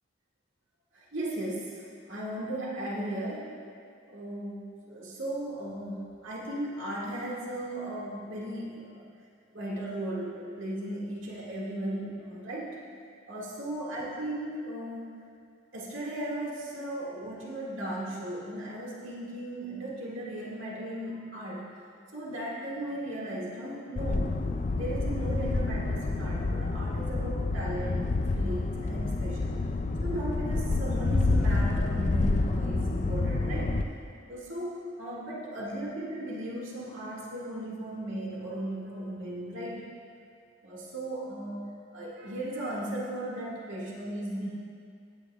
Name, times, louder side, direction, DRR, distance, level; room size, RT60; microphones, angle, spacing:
voice 1, 0.9-3.6 4.1-9.0 9.5-12.8 13.3-15.1 15.7-21.7 22.1-24.4 24.7-29.6 30.0-33.8 34.3-39.8 40.6-44.5, right 1 dB, 75° right, -5 dB, 2.1 m, -36 dB
sound 1, 24.0-33.8, left 2 dB, 35° left, 0.4 m, -28 dB
16.5 x 8.6 x 2.4 m, 2.3 s
head